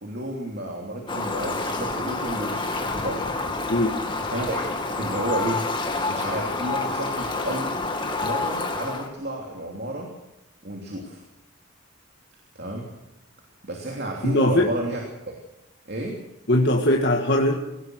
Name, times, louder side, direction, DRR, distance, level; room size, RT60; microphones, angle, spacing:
voice 1, 0.0-3.2 4.3-5.6 6.1-7.8 8.1-10.1 10.6-11.2 12.5-12.9 13.6-15.4 15.9-16.2, right 1 dB, 50° right, -1 dB, 3.1 m, -31 dB
Fowl, 1.1-9.1, left 3 dB, 25° left, 2.2 m, -28 dB
voice 2, 3.7-4.0 14.2-14.7 16.5-17.6, left 1 dB, 55° left, 1 dB, 1.7 m, -20 dB
24.0 x 17.5 x 6.4 m, 0.88 s
head